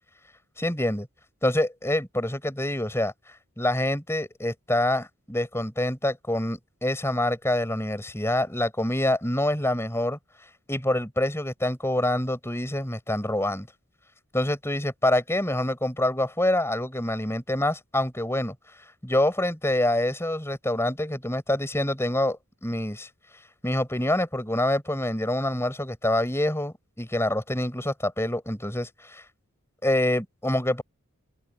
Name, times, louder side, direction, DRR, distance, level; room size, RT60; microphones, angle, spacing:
voice 1, 0.6-1.1 1.4-3.1 3.6-10.2 10.7-13.7 14.3-18.6 19.0-23.1 23.6-29.2 29.8-30.8, left 1 dB, 10° left, 5.7 m, -26 dB
open air
head